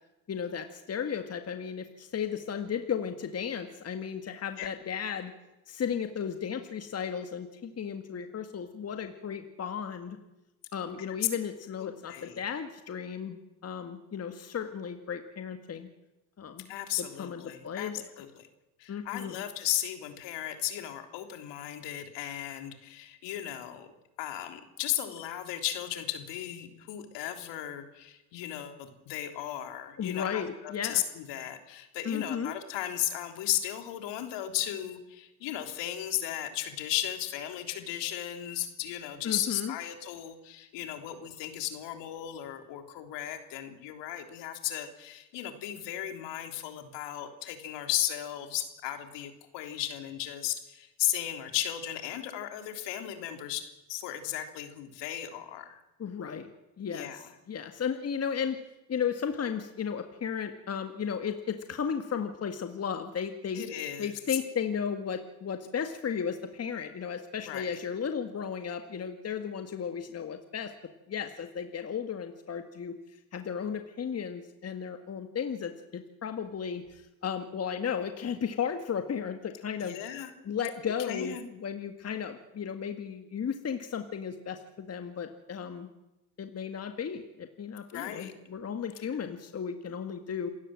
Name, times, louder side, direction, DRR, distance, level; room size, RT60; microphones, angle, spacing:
voice 1, 0.3-5.3 5.7-10.2 10.7-15.9 16.4-16.7 17.0-18.1 18.9-19.4 30.0-31.0 32.1-32.5 39.2-39.7 56.0-56.5 56.8-58.6 58.9-63.6 64.0-70.7 71.1-73.0 73.3-80.0 80.4-85.9 86.4-90.5, left 7 dB, 30° left, 7 dB, 1.9 m, -34 dB
voice 2, 11.8-12.4 16.7-17.9 18.2-18.5 18.8-23.9 24.2-53.6 53.9-55.8 56.9-57.3 63.5-64.4 67.5-67.8 79.8-80.3 81.0-81.5 87.9-88.3, left 12 dB, 65° left, 6 dB, 3.5 m, -35 dB
27.5 x 16.0 x 7.7 m, 0.98 s
hypercardioid pair, 75°, 47 cm